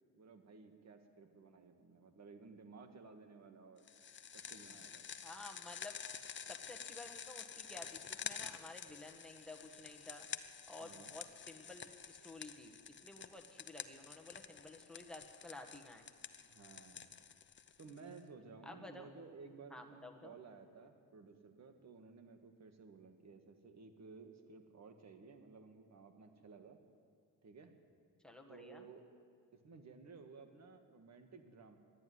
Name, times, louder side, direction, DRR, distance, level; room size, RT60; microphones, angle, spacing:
voice 1, 0.0-3.8 4.3-5.1 10.8-11.1 16.5-17.1 17.8-26.8 27.4-27.7 28.5-29.0 29.5-31.8, right 4 dB, 50° right, 6 dB, 1.8 m, -56 dB
sound 1, 3.9-18.2, left 7 dB, 35° left, 0.7 m, -49 dB
voice 2, 5.2-5.9 6.4-10.3 10.7-16.0 18.6-19.1 19.7-20.4 28.2-28.9, left 2 dB, ahead, 1 dB, 1.6 m, -53 dB
13.0 x 10.5 x 9.5 m, 2.1 s
cardioid pair, 110°, 35 cm